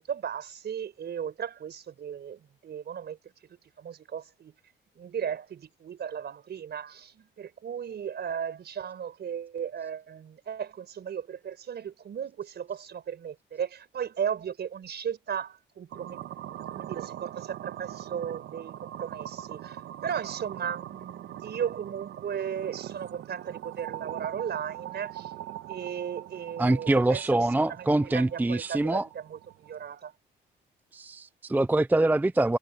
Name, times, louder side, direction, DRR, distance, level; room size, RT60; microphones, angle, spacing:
voice 1, 0.0-3.2 3.8-4.5 4.9-25.3 25.7-30.1, right 8 dB, 55° right, 5.1 m, -36 dB
sound 1, 15.9-29.9, right 12 dB, 80° right, 1.4 m, -42 dB
voice 2, 26.6-29.1 30.9-32.6, right 2 dB, 10° right, 0.5 m, -24 dB
cardioid pair, 90°, 20 cm